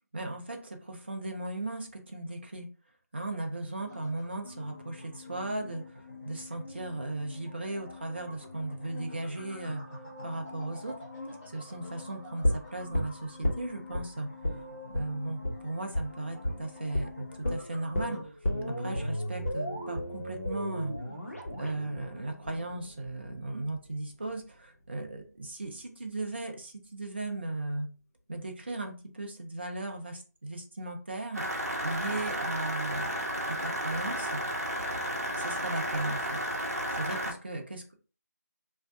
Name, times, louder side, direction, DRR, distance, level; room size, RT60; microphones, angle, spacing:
voice 1, 0.1-2.7 3.1-9.8 10.2-11.0 11.5-14.3 14.9-18.3 18.7-20.9 21.6-27.9 28.3-31.4 31.8-33.1 33.5-34.4 35.4-36.4 36.9-38.0, right 2 dB, 35° right, 4 dB, 0.5 m, -37 dB
sound 1, 3.8-18.2, left 2 dB, 5° right, 0.7 m, -46 dB
sound 2, 12.4-14.1 14.4-14.6 14.9-15.1 15.4-15.6 15.9-16.1 16.4-16.6 16.9-17.1 17.4-23.4 23.7-23.8, left 1 dB, 50° left, 0.9 m, -33 dB
sound 3, 31.3-37.3, equal, 60° right, 0.8 m, -33 dB
2.6 x 2.2 x 3.4 m, 0.37 s
figure-of-eight pair, 165°, 9 cm